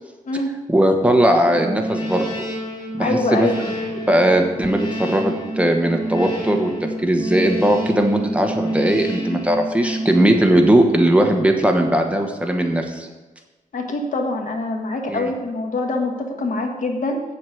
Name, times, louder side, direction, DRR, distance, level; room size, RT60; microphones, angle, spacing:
voice 1, 0.7-2.4 2.9-3.5 4.1-13.1 15.1-15.3, right 1 dB, 10° right, 3 dB, 1.2 m, -18 dB
sound 1, 1.4-11.3, equal, 30° left, 3.7 m, -28 dB
voice 2, 3.0-3.5 13.7-17.2, left 2 dB, 60° left, 3 dB, 1.5 m, -24 dB
8.4 x 7.8 x 6.4 m, 1.2 s
wide cardioid pair, 125°, 15 cm